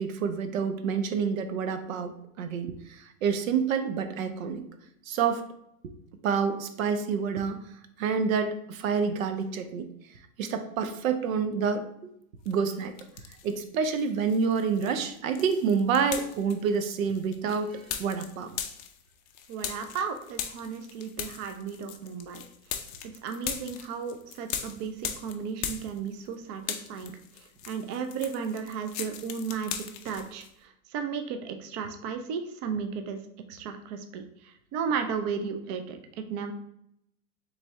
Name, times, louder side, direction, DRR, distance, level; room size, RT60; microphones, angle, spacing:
voice 1, 0.0-4.6 5.1-5.5 6.2-7.6 8.0-9.9 10.4-11.8 12.5-12.9 13.4-18.5, right 6 dB, 75° right, 8 dB, 0.7 m, -28 dB
sound 1, 12.5-13.6 14.0-26.3 26.6-30.5, left 9 dB, 30° left, 0.4 m, -39 dB
voice 2, 19.5-22.4 23.0-27.1 27.7-30.4 30.9-33.2 33.5-34.2 34.7-36.5, right 6 dB, 30° right, 6 dB, 0.4 m, -34 dB
3.9 x 3.3 x 3.4 m, 0.75 s
hypercardioid pair, 125°, 41 cm